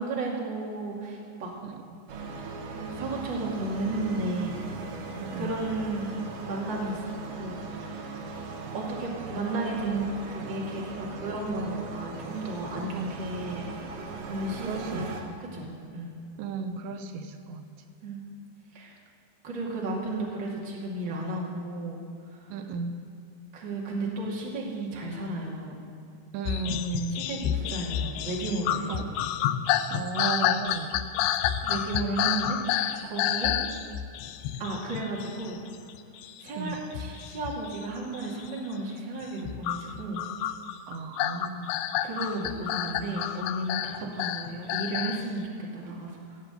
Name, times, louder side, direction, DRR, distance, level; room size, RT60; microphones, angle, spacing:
voice 1, 0.0-1.5 2.7-4.6 5.4-7.0 7.3-8.2 8.7-13.7 14.2-15.1 15.5-16.1 18.0-18.2 18.7-19.0 19.4-22.0 22.3-22.6 23.5-25.8 27.1-29.0 31.6-33.5 34.6-35.6 36.4-40.2 42.0-46.4, right 2 dB, 35° right, -2 dB, 2.2 m, -33 dB
voice 2, 1.6-2.0 5.2-5.5 13.0-13.1 14.7-15.0 16.4-17.7 22.5-23.0 26.3-27.2 28.9-29.0 29.9-31.0 36.6-36.8 40.9-41.7 44.0-44.1, right 4 dB, 90° right, 7 dB, 3.1 m, -34 dB
sound 1, 2.1-15.2, right 3 dB, 65° right, 2.3 m, -39 dB
sound 2, 26.4-35.9 36.2-37.9 38.1-38.6 39.2-45.2, left 11 dB, 85° left, 2.2 m, -30 dB
17.0 x 8.1 x 7.9 m, 2.5 s
omnidirectional pair, 5.1 m